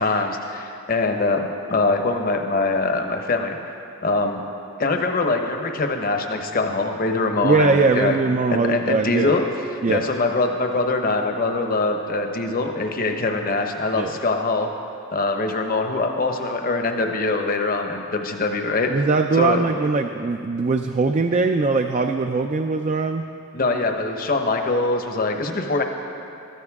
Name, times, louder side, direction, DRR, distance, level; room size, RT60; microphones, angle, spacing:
voice 1, 0.0-3.6 4.0-4.4 4.8-8.2 8.5-9.4 9.9-14.7 15.1-18.9 19.3-19.6 23.5-25.8, left 3 dB, 40° left, 4 dB, 0.9 m, -23 dB
voice 2, 7.4-9.3 9.8-10.0 13.9-14.2 18.9-23.3, right 4 dB, 35° right, 6 dB, 0.3 m, -21 dB
14.5 x 13.5 x 3.6 m, 2.7 s
head